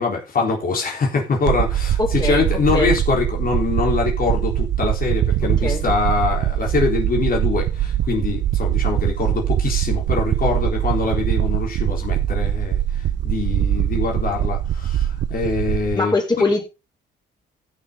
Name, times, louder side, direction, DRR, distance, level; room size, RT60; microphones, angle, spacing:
voice 1, 0.0-16.4, left 4 dB, 45° left, 4.0 m, -24 dB
sound 1, 1.5-16.0, right 11 dB, 65° right, 0.8 m, -22 dB
voice 2, 2.0-2.4 2.7-2.9 5.6-5.8 15.9-16.6, left 3 dB, 20° left, 4.8 m, -21 dB
15.5 x 6.6 x 3.9 m
cardioid pair, 90°, 20 cm